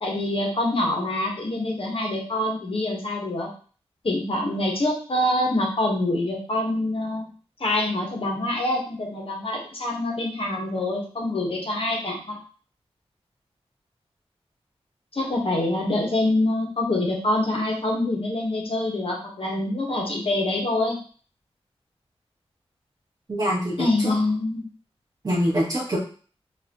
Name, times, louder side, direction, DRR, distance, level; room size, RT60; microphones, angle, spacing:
voice 1, 0.0-3.5 4.0-7.2 7.6-12.4 15.1-21.0 23.8-24.6, left 1 dB, 60° left, -1 dB, 1.4 m, -25 dB
voice 2, 23.3-24.1 25.2-26.0, equal, 35° right, -6 dB, 1.8 m, -24 dB
4.9 x 2.9 x 3.0 m, 0.41 s
wide cardioid pair, 80°, 11 cm